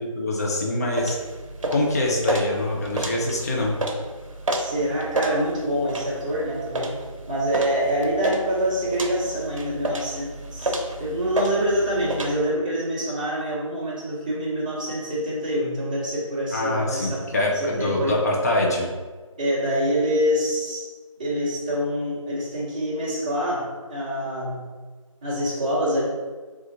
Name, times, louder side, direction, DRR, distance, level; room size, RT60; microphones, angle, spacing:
voice 1, 0.2-1.2 1.7-3.7 16.5-18.9, left 1 dB, 30° left, -2 dB, 0.6 m, -24 dB
sound 1, 0.9-12.3, right 1 dB, 65° right, 0.8 m, -30 dB
voice 2, 4.5-6.9 7.3-10.7 11.0-17.3 17.5-18.2 19.4-20.9 21.2-24.6 25.2-26.0, equal, 15° right, -8 dB, 0.8 m, -26 dB
3.9 x 2.4 x 4.3 m, 1.4 s
figure-of-eight pair, 165°, 18 cm